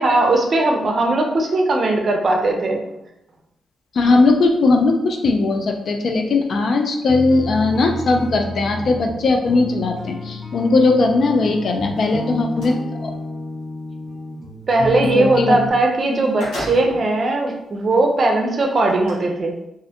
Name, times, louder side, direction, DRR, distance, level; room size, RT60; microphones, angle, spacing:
voice 1, 0.0-2.8 14.7-19.6, right 2 dB, 50° right, 2 dB, 0.5 m, -18 dB
voice 2, 4.0-12.7 13.0-13.1 15.1-15.6, left 3 dB, 60° left, 3 dB, 0.3 m, -18 dB
sound 1, 7.1-15.7, left 2 dB, 15° left, 1.0 m, -30 dB
sound 2, 11.9-12.8 15.7-15.8 16.1-17.2 17.8-17.9 18.9-19.1, equal, 90° left, 0.9 m, -32 dB
2.4 x 2.1 x 2.7 m, 0.87 s
cardioid pair, 85°, 0 cm